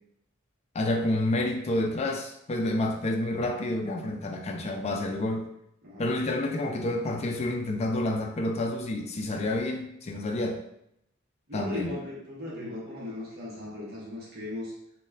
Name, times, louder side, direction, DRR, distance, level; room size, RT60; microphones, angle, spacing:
voice 1, 0.7-5.5 6.0-10.6 11.5-11.9, left 1 dB, 30° left, 2 dB, 0.4 m, -29 dB
voice 2, 11.5-14.7, left 2 dB, 50° right, -5 dB, 0.8 m, -37 dB
2.3 x 2.2 x 3.2 m, 0.77 s
head